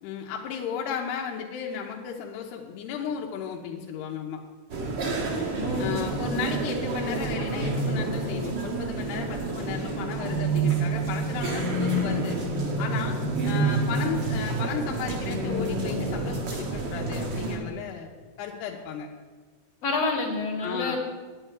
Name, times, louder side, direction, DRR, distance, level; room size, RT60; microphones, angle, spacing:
voice 1, 0.0-4.4 5.8-12.4 12.8-13.2 13.4-18.1 18.4-19.1 20.6-21.0, left 7 dB, 85° left, 0 dB, 3.0 m, -34 dB
sound 1, 4.7-17.6, right 3 dB, 55° right, 1.2 m, -31 dB
voice 2, 5.5-6.1 19.8-21.0, left 3 dB, 45° left, 0 dB, 2.6 m, -28 dB
sound 2, 7.6-8.7 10.2-16.7, right 2 dB, 70° right, 4.2 m, -29 dB
9.7 x 8.9 x 9.1 m, 1.4 s
omnidirectional pair, 4.7 m